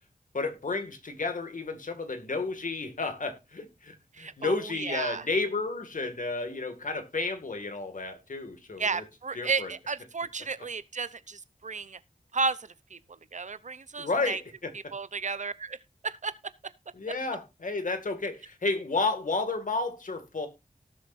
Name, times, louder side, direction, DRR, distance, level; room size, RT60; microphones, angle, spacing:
voice 1, 0.3-9.0 9.4-9.7 14.0-14.7 17.0-20.5, left 3 dB, 65° left, 2.1 m, -32 dB
voice 2, 4.1-5.3 8.8-12.0 12.3-13.0 13.3-14.4 14.7-15.8 16.0-16.3 16.6-16.7, right 4 dB, 60° right, 0.7 m, -33 dB
18.0 x 7.0 x 2.6 m
wide cardioid pair, 85°, 14 cm